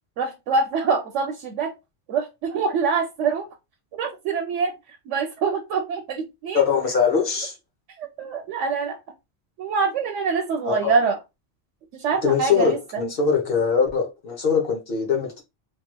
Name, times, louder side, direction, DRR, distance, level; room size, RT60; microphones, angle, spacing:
voice 1, 0.2-1.7 2.1-3.5 4.0-4.7 5.1-6.6 8.0-9.0 9.6-11.2 11.9-12.8, right 5 dB, 85° right, 0.9 m, -25 dB
voice 2, 6.5-7.5 10.6-10.9 12.2-15.4, left 6 dB, 55° left, 1.0 m, -22 dB
3.2 x 2.9 x 2.2 m
omnidirectional pair, 1.2 m